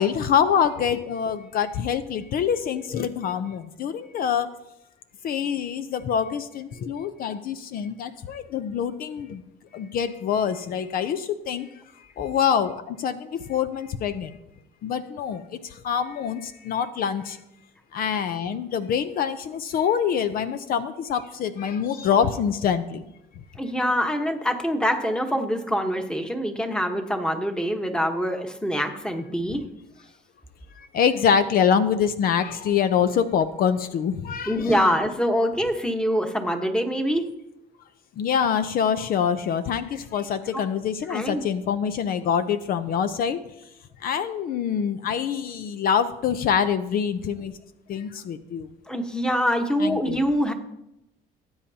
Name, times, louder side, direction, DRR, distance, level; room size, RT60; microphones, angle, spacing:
voice 1, 0.0-4.5 5.2-9.4 9.7-11.7 12.0-14.4 14.8-17.4 17.9-23.0 30.8-34.9 38.2-43.4 44.0-47.6 47.9-48.7 49.8-50.2, left 7 dB, 60° left, 11 dB, 0.6 m, -25 dB
voice 2, 23.6-29.6 34.5-37.2 40.5-40.6 41.1-41.4 48.9-50.5, equal, 5° left, 5 dB, 1.2 m, -24 dB
18.0 x 8.8 x 2.8 m, 0.85 s
cardioid pair, 110°, 17 cm